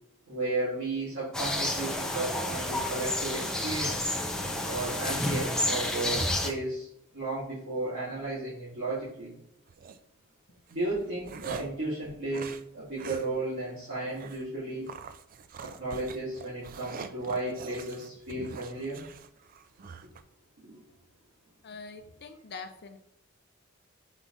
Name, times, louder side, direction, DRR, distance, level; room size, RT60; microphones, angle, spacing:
voice 1, 0.3-4.1 4.6-6.9 7.1-9.4 10.7-14.9 15.6-19.0 20.6-20.8, right 2 dB, 70° right, -10 dB, 2.6 m, -34 dB
sound 1, 1.3-6.5, left 1 dB, 5° left, 0.8 m, -30 dB
Velociraptor Huffs, 9.7-10.0 10.7-11.8 12.3-12.6 13.0-13.3 13.6-13.7 14.1-14.5 14.9-20.2, right 6 dB, 40° right, 0.4 m, -44 dB
voice 2, 21.6-23.0, left 4 dB, 50° left, 6 dB, 0.5 m, -44 dB
7.2 x 3.4 x 4.0 m, 0.74 s
head